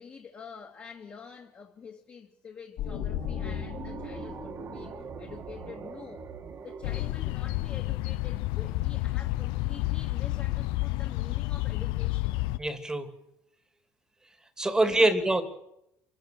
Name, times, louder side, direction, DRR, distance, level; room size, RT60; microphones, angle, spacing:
voice 1, 0.0-6.2 6.6-12.4 14.7-15.1, left 6 dB, 25° left, -1 dB, 2.6 m, -47 dB
sound 1, 2.8-6.4, left 9 dB, 55° left, 6.5 m, -37 dB
sound 2, 3.0-8.2, right 6 dB, 30° right, 2.2 m, -43 dB
sound 3, 6.8-12.6, left 19 dB, 80° left, 0.8 m, -30 dB
voice 2, 12.6-13.1 14.6-15.4, right 2 dB, 10° right, 9 dB, 2.4 m, -24 dB
27.5 x 18.0 x 7.7 m, 0.83 s
cardioid pair, 175°, 8 cm